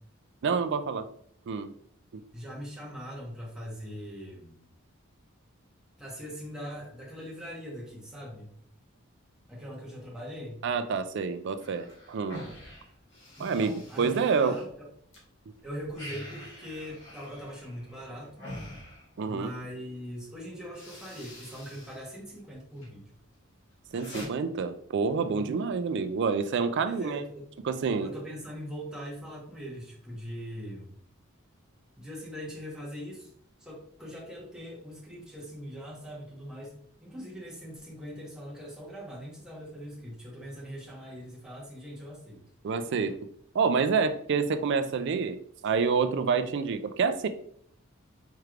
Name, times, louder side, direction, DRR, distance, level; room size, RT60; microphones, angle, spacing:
voice 1, 0.4-1.1 1.5-1.7 2.1-2.2 10.6-12.4 13.4-13.7 14.0-14.6 19.2-19.5 23.9-27.2 27.7-28.1 42.6-43.2 43.5-47.3, right 5 dB, 55° right, 10 dB, 0.4 m, -28 dB
voice 2, 2.3-4.7 6.0-8.5 9.5-10.6 13.4-14.9 15.6-18.5 19.2-23.1 25.3-25.6 26.8-27.5 28.0-31.0 32.0-33.3 33.6-42.4, equal, 5° right, -5 dB, 1.1 m, -41 dB
sound 1, 11.6-15.2 15.5-19.6 20.2-20.4 20.6-22.1 22.4-22.9 23.3-24.3, left 1 dB, 60° left, 1.6 m, -46 dB
4.5 x 3.2 x 2.4 m, 0.64 s
head